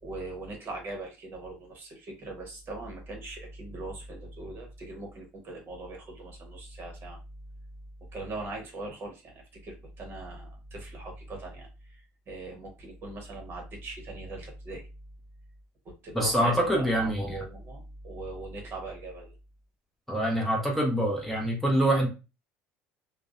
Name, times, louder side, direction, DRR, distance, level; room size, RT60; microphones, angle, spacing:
voice 1, 0.0-7.2 8.1-14.9 15.8-19.3, right 2 dB, 40° right, 2 dB, 1.0 m, -40 dB
voice 2, 16.1-17.2 20.1-22.1, right 1 dB, ahead, -2 dB, 0.7 m, -25 dB
2.5 x 2.0 x 2.4 m, 0.30 s
supercardioid pair, 115°, 6 cm